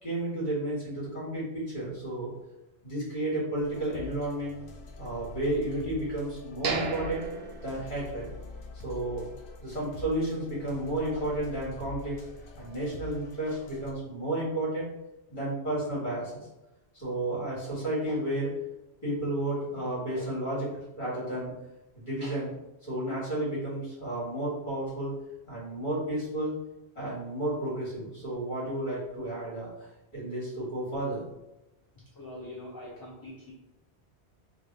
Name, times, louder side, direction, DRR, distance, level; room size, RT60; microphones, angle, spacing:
voice 1, 0.0-2.3 2.8-4.5 5.0-7.2 7.6-8.3 8.8-9.2 9.6-12.2 12.5-14.9 15.3-16.3 16.9-18.5 19.0-21.5 21.9-22.5 22.8-25.1 25.4-26.6 26.9-29.9 30.1-31.2, right 1 dB, 50° left, -7 dB, 1.7 m, -32 dB
sound 1, 3.6-13.9, left 3 dB, 65° left, 0.7 m, -46 dB
sound 2, 6.6-8.6 8.9-9.0 9.5-9.7, right 4 dB, 70° right, 0.8 m, -35 dB
voice 2, 32.2-33.5, left 1 dB, 30° left, -6 dB, 0.4 m, -43 dB
3.3 x 2.3 x 3.7 m, 0.93 s
omnidirectional pair, 1.1 m